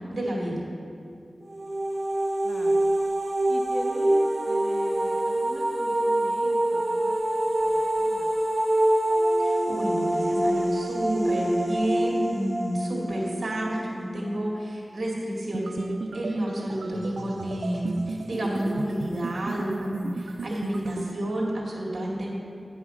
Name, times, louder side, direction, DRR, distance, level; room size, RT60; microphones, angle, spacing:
voice 1, 0.1-0.6 9.4-15.8 16.1-22.3, right 1 dB, 65° right, -3 dB, 2.1 m, -30 dB
sound 1, 1.5-14.3, right 1 dB, 35° right, 0.9 m, -25 dB
voice 2, 2.4-3.0 3.5-7.2 7.6-8.3, equal, 5° right, 1 dB, 0.7 m, -41 dB
sound 2, 15.5-21.1, right 3 dB, 85° right, 0.4 m, -35 dB
9.7 x 5.6 x 6.3 m, 2.5 s
wide cardioid pair, 80°, 0 cm